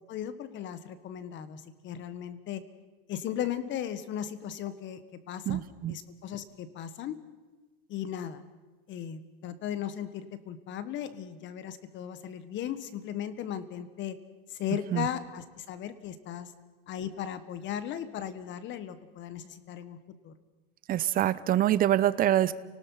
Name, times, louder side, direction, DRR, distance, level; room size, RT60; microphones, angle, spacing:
voice 1, 0.1-2.6 3.1-5.0 5.3-5.6 5.9-7.2 7.9-8.4 8.9-14.2 14.5-16.5 16.9-20.3, left 10 dB, 35° left, 14 dB, 1.5 m, -37 dB
voice 2, 5.5-5.9 14.9-15.0 20.9-22.5, right 12 dB, 30° right, 16 dB, 0.7 m, -25 dB
29.5 x 19.0 x 5.7 m, 1.3 s
supercardioid pair, 135°, 31 cm